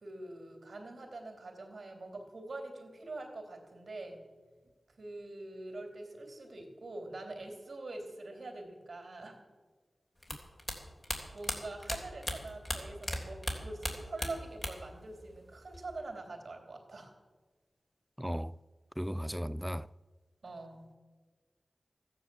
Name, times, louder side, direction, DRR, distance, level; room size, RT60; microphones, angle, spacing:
voice 1, 0.0-4.2 5.0-9.3 11.3-17.1 20.4-20.9, right 2 dB, 70° right, 3.3 m, -44 dB
sound 1, 10.2-13.2 13.4-15.0 15.2-16.0, left 1 dB, 30° left, 3.3 m, -37 dB
voice 2, 18.2-18.6 19.0-19.9, equal, ahead, 0.3 m, -35 dB
14.0 x 9.9 x 7.8 m
cardioid pair, 40°, 0 cm